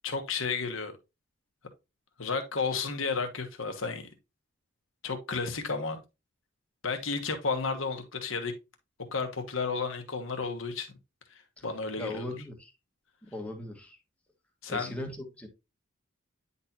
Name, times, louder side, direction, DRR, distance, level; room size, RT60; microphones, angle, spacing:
voice 1, 0.0-0.9 2.2-4.1 5.0-6.0 6.8-8.5 9.1-10.9 11.6-12.4 14.6-14.9, left 4 dB, 70° left, 1.3 m, -32 dB
voice 2, 12.0-12.5 13.3-14.0 14.7-15.5, left 1 dB, 5° left, 1.4 m, -38 dB
9.6 x 4.2 x 2.8 m
head